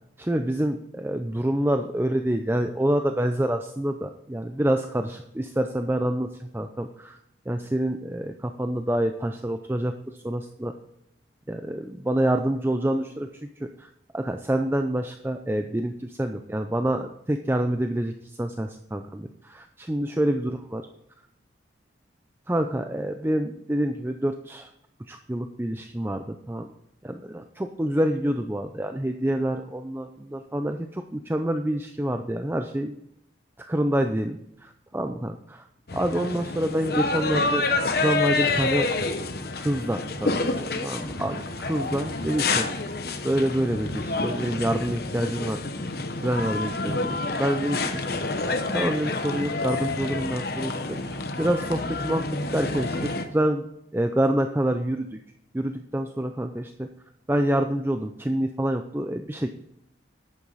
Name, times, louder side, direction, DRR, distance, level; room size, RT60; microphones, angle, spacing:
voice 1, 0.2-7.2 7.5-10.0 10.2-10.7 11.5-13.3 13.6-20.9 22.5-24.7 25.1-26.7 27.0-33.0 33.6-35.6 35.9-37.6 37.9-38.9 39.6-42.7 43.2-45.6 46.2-48.4 48.7-52.3 52.5-53.7 53.9-55.2 55.5-56.9 57.3-59.5, right 1 dB, 10° right, 6 dB, 0.4 m, -27 dB
sound 1, 35.9-53.2, left 3 dB, 55° left, 1.0 m, -28 dB
11.0 x 8.7 x 4.0 m, 0.79 s
head